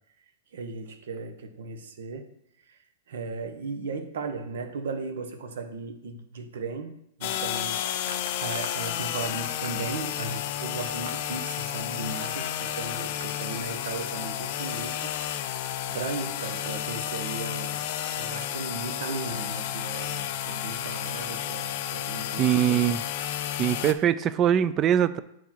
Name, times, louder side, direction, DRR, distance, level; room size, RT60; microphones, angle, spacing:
voice 1, 0.5-2.3 2.7-2.8 3.1-15.1 15.8-23.0, right 4 dB, 75° right, 6 dB, 1.2 m, -36 dB
sound 1, 7.2-23.9, left 11 dB, 50° left, 0.5 m, -32 dB
voice 2, 22.4-23.0 23.6-25.2, right 10 dB, 25° right, 15 dB, 0.3 m, -22 dB
8.5 x 4.6 x 4.4 m, 0.77 s
supercardioid pair, 155°, 0 cm